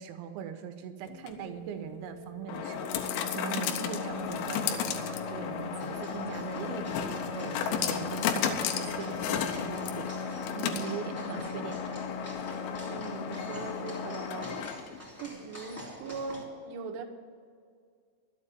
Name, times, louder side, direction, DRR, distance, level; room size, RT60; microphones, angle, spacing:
voice 1, 0.0-12.0, right 9 dB, 90° right, 7 dB, 3.7 m, -41 dB
sound 1, 1.1-15.0, left 7 dB, 80° left, 3.4 m, -34 dB
sound 2, 4.1-10.4, left 2 dB, 30° left, 1.8 m, -50 dB
sound 3, 5.8-16.4, equal, 10° left, 1.0 m, -48 dB
voice 2, 12.8-14.7 15.2-17.0, right 4 dB, 70° right, 4 dB, 2.9 m, -40 dB
12.0 x 8.3 x 9.1 m, 2.1 s
omnidirectional pair, 5.9 m